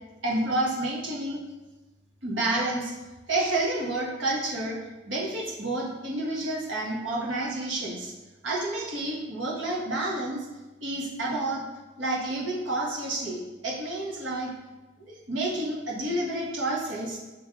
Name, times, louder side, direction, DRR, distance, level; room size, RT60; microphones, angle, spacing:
voice 1, 0.2-1.4 2.2-2.9 3.3-4.8 5.1-8.1 8.4-10.5 10.8-11.6 12.0-14.5 15.0-17.2, right 2 dB, 70° right, -3 dB, 1.5 m, -29 dB
5.8 x 3.9 x 4.9 m, 1.1 s
head